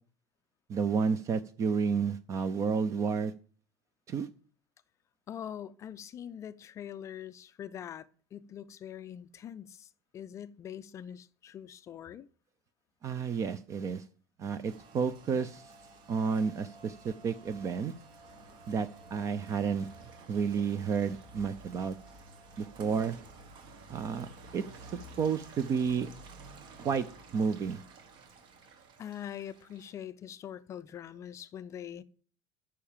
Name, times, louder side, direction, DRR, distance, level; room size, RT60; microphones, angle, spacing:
voice 1, 0.7-3.3 4.1-4.3 13.0-14.0 14.4-15.7 16.1-17.9 18.7-19.9 20.3-22.0 22.6-23.2 23.9-24.6 24.9-26.1 26.8-27.1 27.3-27.8, right 6 dB, 25° right, 0.5 m, -31 dB
voice 2, 5.3-12.3 29.0-32.0, left 9 dB, 25° left, 0.4 m, -43 dB
Rain, 14.7-30.1, right 3 dB, 45° right, 1.5 m, -52 dB
9.7 x 5.7 x 7.2 m
cardioid pair, 175°, 11 cm